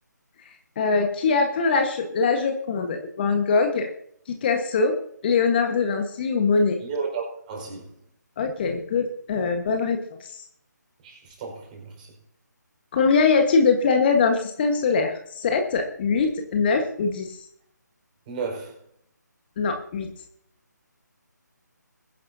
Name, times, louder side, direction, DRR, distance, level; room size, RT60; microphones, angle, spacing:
voice 1, 0.8-3.9 4.3-4.9 5.2-6.8 8.4-10.0 12.9-17.4 19.6-20.1, left 4 dB, 30° left, 1.4 m, -22 dB
voice 2, 6.8-7.9 11.0-12.1 18.3-18.8, right 5 dB, 25° right, 4.9 m, -33 dB
21.5 x 11.0 x 2.8 m
figure-of-eight pair, 150°, 10 cm